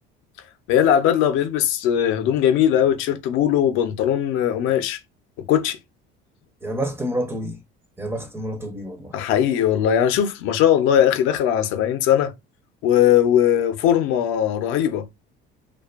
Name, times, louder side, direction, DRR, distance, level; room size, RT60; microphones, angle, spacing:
voice 1, 0.7-5.0 5.5-5.8 9.1-12.3 12.8-15.0, left 10 dB, 75° left, 0.5 m, -19 dB
voice 2, 6.6-7.6 8.0-9.2, right 1 dB, 10° right, 0.4 m, -28 dB
2.5 x 2.2 x 2.3 m
cardioid pair, 150°, 21 cm